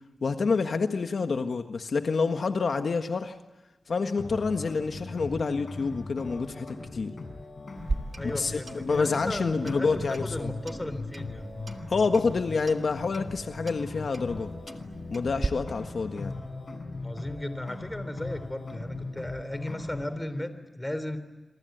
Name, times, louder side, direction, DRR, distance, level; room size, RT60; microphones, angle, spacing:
voice 1, 0.2-3.4 3.9-7.1 8.2-10.5 11.9-14.5 15.1-16.3, left 4 dB, 65° left, 6 dB, 1.5 m, -28 dB
sound 1, 4.2-20.2, left 3 dB, 50° left, 7.2 m, -39 dB
Clock, 7.7-15.5, right 3 dB, 40° right, 1.8 m, -39 dB
voice 2, 8.2-11.5 16.9-21.2, left 1 dB, 15° left, 11 dB, 3.4 m, -36 dB
27.5 x 23.5 x 9.3 m, 1.1 s
wide cardioid pair, 90°, 0 cm